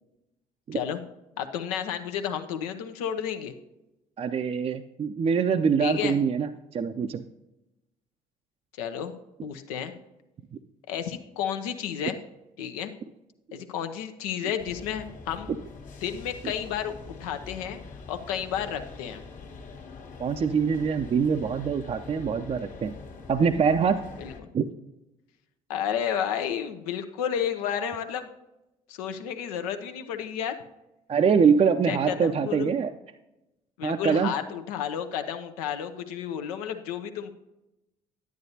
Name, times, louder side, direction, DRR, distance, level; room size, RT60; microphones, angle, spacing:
voice 1, 1.4-3.5 5.8-6.2 8.8-9.2 9.4-9.9 10.9-12.2 12.6-12.9 13.5-15.5 16.0-17.8 18.1-19.2 24.2-24.5 25.7-28.3 28.9-30.6 31.9-32.7 33.8-37.3, left 9 dB, 80° left, 7 dB, 0.7 m, -31 dB
voice 2, 4.2-7.2 20.2-22.9 23.3-24.0 24.5-24.7 31.1-32.9 33.8-34.3, right 6 dB, 35° right, 6 dB, 0.5 m, -24 dB
sound 1, 14.6-24.4, left 4 dB, 45° left, 1.3 m, -44 dB
9.6 x 9.3 x 2.8 m, 0.93 s
hypercardioid pair, 55°, 19 cm